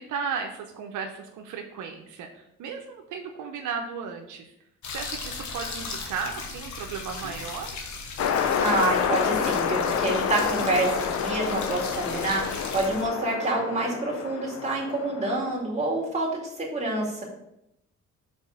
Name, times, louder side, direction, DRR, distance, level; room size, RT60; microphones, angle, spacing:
voice 1, 0.0-4.5 4.9-7.8, right 6 dB, 80° right, 3 dB, 0.8 m, -35 dB
sound 1, 4.8-13.1, left 4 dB, 70° left, 1.2 m, -37 dB
sound 2, 8.2-15.5, left 7 dB, 55° left, 0.7 m, -28 dB
voice 2, 8.6-17.2, right 2 dB, 20° right, -4 dB, 2.5 m, -27 dB
5.3 x 4.3 x 5.3 m, 0.82 s
cardioid pair, 90°, 30 cm